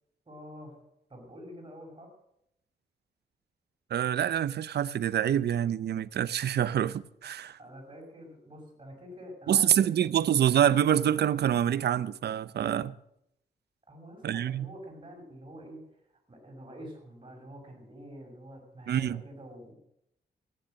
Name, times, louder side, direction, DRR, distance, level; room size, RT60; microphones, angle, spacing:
voice 1, 0.3-0.8 1.1-2.1 7.6-9.9 13.9-15.9 16.3-19.7, equal, 30° right, 5.8 m, -47 dB
voice 2, 3.9-7.6 9.5-12.9 14.2-14.7 18.9-19.2, right 10 dB, 70° right, 0.6 m, -26 dB
14.5 x 10.5 x 6.4 m
cardioid pair, 85°, 18 cm